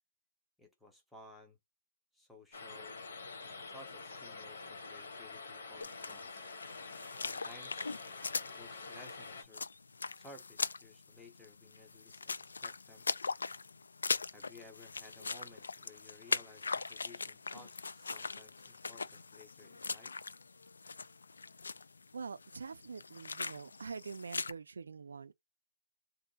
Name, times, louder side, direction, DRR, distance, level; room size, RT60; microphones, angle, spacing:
voice 1, 0.6-1.6 2.1-2.9 3.4-6.4 7.2-7.9 8.5-9.7 10.1-13.1 14.3-20.2, left 2 dB, ahead, 0.5 m, -57 dB
sound 1, 2.5-9.4, left 4 dB, 40° left, 0.9 m, -47 dB
sound 2, 5.8-24.5, left 4 dB, 85° left, 0.4 m, -41 dB
voice 2, 22.1-25.3, right 5 dB, 65° right, 0.4 m, -45 dB
2.7 x 2.3 x 3.9 m
hypercardioid pair, 180°, 0 cm